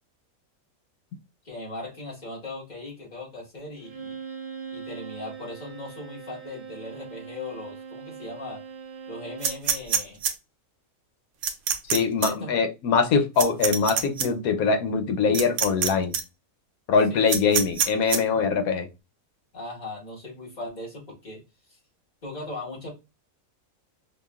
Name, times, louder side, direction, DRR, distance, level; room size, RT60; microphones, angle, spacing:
voice 1, 1.4-4.2 4.7-8.6 9.1-10.2 12.2-12.5 17.1-17.6 19.5-21.4 22.2-22.9, left 2 dB, 30° left, 1.6 m, -38 dB
Bowed string instrument, 3.8-9.7, right 6 dB, 50° right, 0.6 m, -41 dB
sound 1, 9.4-10.3 11.4-12.0 12.2-12.3 13.4-14.3 15.3-15.9 16.1-16.2 17.3-18.2, right 7 dB, 85° right, 1.2 m, -24 dB
voice 2, 11.9-16.2 16.9-18.9, left 5 dB, 80° left, 1.1 m, -23 dB
4.9 x 2.5 x 2.4 m
omnidirectional pair, 1.5 m